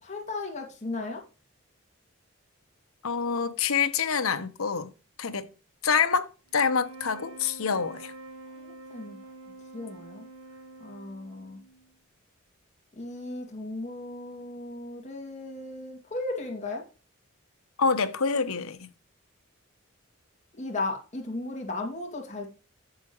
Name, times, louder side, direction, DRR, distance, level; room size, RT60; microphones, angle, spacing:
voice 1, 0.0-1.2 8.6-9.2 9.7-10.3 10.8-11.6 13.0-16.8 20.6-22.5, left 2 dB, 35° left, 2.2 m, -36 dB
voice 2, 3.0-4.9 5.2-5.5 5.8-8.1 17.8-18.9, left 5 dB, 85° left, 0.9 m, -26 dB
sound 1, 6.5-11.9, right 2 dB, 85° right, 1.5 m, -47 dB
10.5 x 7.5 x 3.0 m
head